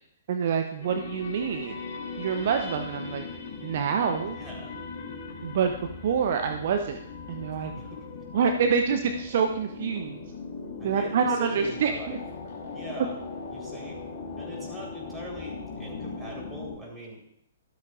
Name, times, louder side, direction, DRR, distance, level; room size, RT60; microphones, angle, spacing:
voice 1, 0.3-1.8 2.2-3.2 3.6-4.4 5.4-5.7 6.0-7.0 7.3-7.7 8.3-10.2 10.8-12.2, right 6 dB, 50° right, 6 dB, 0.7 m, -26 dB
sound 1, 0.8-16.8, left 4 dB, 45° left, 2.9 m, -39 dB
voice 2, 4.3-4.7 8.1-8.2 10.8-12.2 12.7-13.1 13.5-14.0 14.4-17.2, right 1 dB, 10° right, -3 dB, 3.9 m, -41 dB
13.0 x 12.5 x 2.5 m, 0.72 s
figure-of-eight pair, 120°, 0 cm